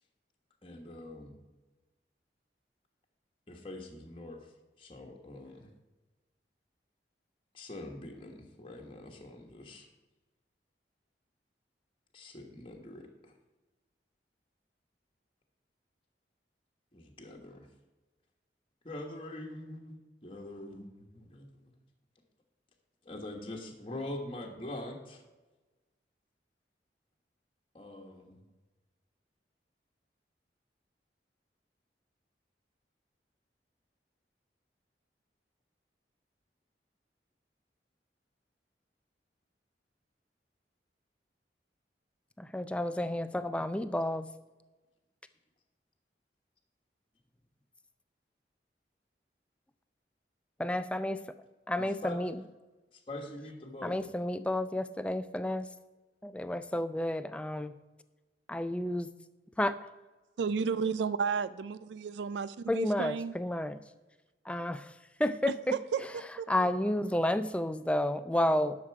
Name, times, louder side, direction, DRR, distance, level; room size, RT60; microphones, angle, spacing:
voice 1, 0.6-1.3 3.5-4.4 4.8-5.7 7.5-9.9 12.1-13.3 16.9-17.7 18.8-21.7 23.0-25.2 27.7-28.4 51.8-52.2 52.9-54.0, left 1 dB, 30° left, 1.3 m, -44 dB
voice 2, 42.4-44.3 50.6-51.2 51.7-52.4 53.8-55.7 56.2-57.7 58.5-59.1 59.6-59.7 62.7-63.8 64.5-64.8 65.2-65.8 66.5-68.8, left 1 dB, 5° left, 0.4 m, -31 dB
voice 3, 60.4-63.3 65.5-66.7, right 6 dB, 85° right, 0.3 m, -33 dB
11.0 x 6.6 x 4.7 m
head